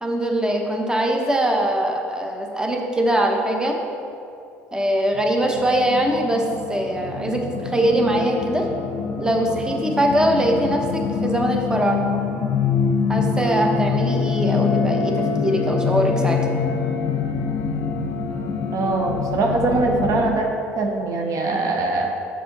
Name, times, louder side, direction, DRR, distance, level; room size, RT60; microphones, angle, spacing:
voice 1, 0.0-3.8 4.7-8.7 9.2-12.1 13.1-16.4, right 1 dB, 10° right, 2 dB, 1.0 m, -22 dB
sound 1, 5.1-20.3, left 5 dB, 55° left, 0.7 m, -25 dB
voice 2, 18.7-20.5 20.8-22.1, right 3 dB, 55° right, 2 dB, 0.8 m, -22 dB
6.6 x 6.5 x 4.0 m, 2.5 s
hypercardioid pair, 60°, 7 cm